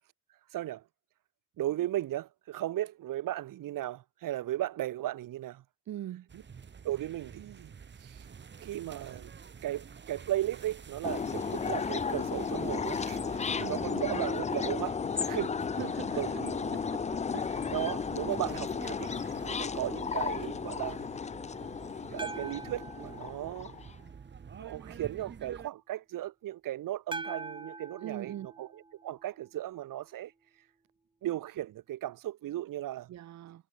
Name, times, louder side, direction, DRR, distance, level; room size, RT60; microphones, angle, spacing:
voice 1, 0.5-0.8 1.6-5.6 6.3-6.4 6.8-7.7 8.0-8.3 8.6-9.3 9.6-13.2 13.6-15.6 16.2-16.7 17.7-19.1 19.4-21.1 21.9-23.8 24.5-30.3 31.2-33.1, right 13 dB, 80° right, 1.4 m, -36 dB
voice 2, 5.9-6.3 13.5-14.2 15.8-16.4 16.7-17.0 17.3-17.7 18.1-18.4 28.0-28.5 33.1-33.6, right 12 dB, 55° right, 1.0 m, -42 dB
sound 1, 6.3-25.7, right 6 dB, 35° right, 5.6 m, -49 dB
sound 2, 11.0-23.9, left 6 dB, 20° left, 0.5 m, -34 dB
sound 3, 22.2-24.4 27.1-29.5, right 3 dB, 15° right, 3.7 m, -44 dB
cardioid pair, 170°, 32 cm